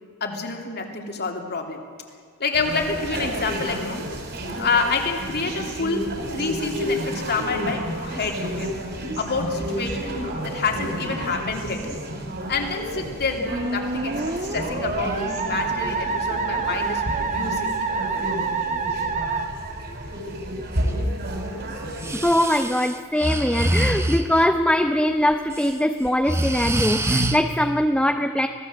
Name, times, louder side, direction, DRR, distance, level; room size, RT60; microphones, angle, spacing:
voice 1, 0.2-1.8 2.4-4.1 4.6-6.1 6.3-8.7 9.2-11.9 12.5-17.9, left 4 dB, 50° left, 3 dB, 3.1 m, -28 dB
sound 1, 2.5-22.4, equal, 50° right, 5.2 m, -31 dB
Musical instrument, 13.5-20.4, right 4 dB, 35° right, 1.6 m, -27 dB
Breathing, 21.9-24.5 25.3-25.7 26.1-27.4, right 1 dB, 10° right, 1.3 m, -25 dB
voice 2, 22.1-28.5, left 1 dB, 5° left, 6 dB, 0.8 m, -21 dB
26.0 x 18.5 x 7.8 m, 2.1 s
head